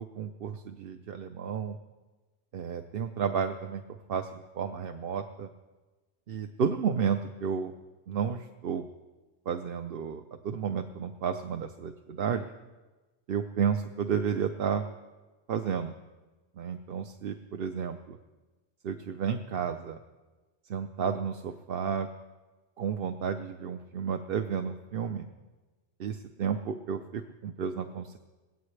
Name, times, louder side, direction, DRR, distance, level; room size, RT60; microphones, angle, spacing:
voice 1, 0.0-1.8 2.5-3.8 4.1-5.5 6.3-7.7 8.1-8.8 9.5-12.5 13.3-14.8 15.5-15.9 16.6-18.2 18.8-20.0 20.7-22.1 22.8-25.3 26.0-28.2, right 7 dB, 60° right, 6 dB, 0.9 m, -32 dB
20.0 x 17.5 x 3.3 m, 1.2 s
omnidirectional pair, 1.2 m